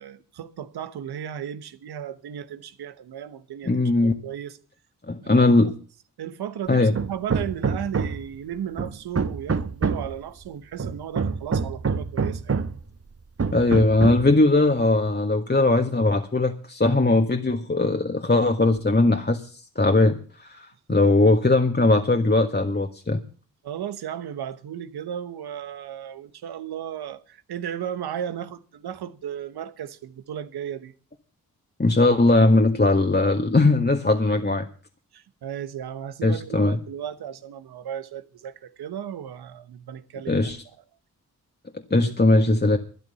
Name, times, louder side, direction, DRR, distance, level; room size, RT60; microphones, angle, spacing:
voice 1, 0.0-4.6 5.2-5.5 6.2-12.6 20.9-21.1 23.6-30.9 35.1-40.5 41.9-42.1, right 9 dB, 90° right, 1.2 m, -35 dB
voice 2, 3.6-4.1 5.1-5.7 6.7-6.9 13.5-23.2 31.8-34.7 36.2-36.8 40.3-40.6 41.9-42.8, left 2 dB, 25° left, 1.7 m, -20 dB
Hammer, 6.9-8.3 8.8-10.2 10.8-12.8 13.4-14.3, right 5 dB, 40° right, 1.1 m, -26 dB
12.5 x 11.0 x 6.9 m
supercardioid pair, 45°, 37 cm